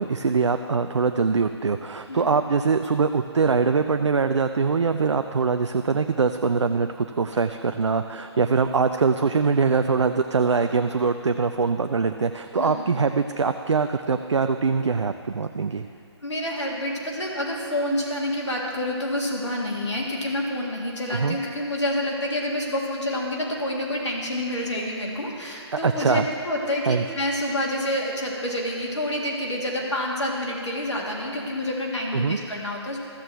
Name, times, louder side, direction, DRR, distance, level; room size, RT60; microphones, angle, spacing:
voice 1, 0.0-15.8 21.1-21.4 25.7-26.3 26.9-27.0 32.1-32.4, right 5 dB, 85° right, 8 dB, 0.4 m, -23 dB
voice 2, 12.6-12.9 16.2-33.0, left 1 dB, 80° left, -3 dB, 1.8 m, -28 dB
14.0 x 7.6 x 3.4 m, 2.5 s
figure-of-eight pair, 145°, 15 cm